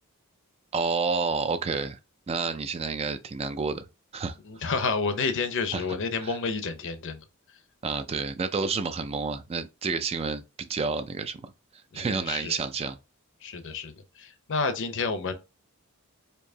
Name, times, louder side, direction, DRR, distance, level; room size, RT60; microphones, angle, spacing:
voice 1, 0.7-2.0 2.3-3.8 4.1-4.4 4.6-4.8 5.7-5.8 6.2-6.3 7.8-10.4 10.7-11.4 11.9-13.0, right 4 dB, 25° right, 0.3 m, -29 dB
voice 2, 4.4-7.2 11.9-12.6 13.4-13.9 14.2-15.3, left 4 dB, 60° left, 0.7 m, -30 dB
4.5 x 2.7 x 2.7 m
head